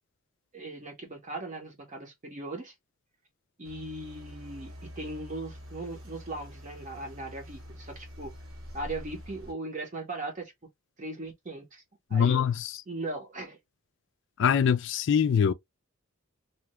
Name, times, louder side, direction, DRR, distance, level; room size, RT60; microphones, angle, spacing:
voice 1, 0.5-2.7 3.6-8.3 8.7-10.5 11.0-11.8 12.1-12.5 12.9-13.6, right 2 dB, 35° right, 0.7 m, -38 dB
sound 1, 3.6-9.5, equal, 65° right, 1.2 m, -46 dB
voice 2, 12.1-12.7 14.4-15.5, left 7 dB, 55° left, 0.3 m, -23 dB
2.8 x 2.2 x 2.9 m
head